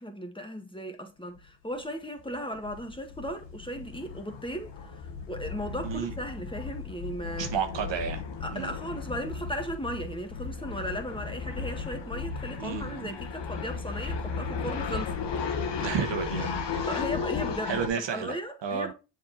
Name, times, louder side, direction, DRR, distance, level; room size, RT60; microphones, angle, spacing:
voice 1, 0.0-7.5 8.4-15.2 16.8-18.9, equal, 10° left, 1.8 m, -36 dB
sound 1, 1.4-1.5 1.8-1.9 2.2-17.9, left 5 dB, 70° left, 1.4 m, -35 dB
voice 2, 5.8-6.1 7.4-8.2 8.5-8.7 12.6-13.2 15.8-16.9 17.7-18.4 18.6-18.9, right 7 dB, 75° right, 1.2 m, -32 dB
7.5 x 4.5 x 4.2 m
cardioid pair, 65°, 44 cm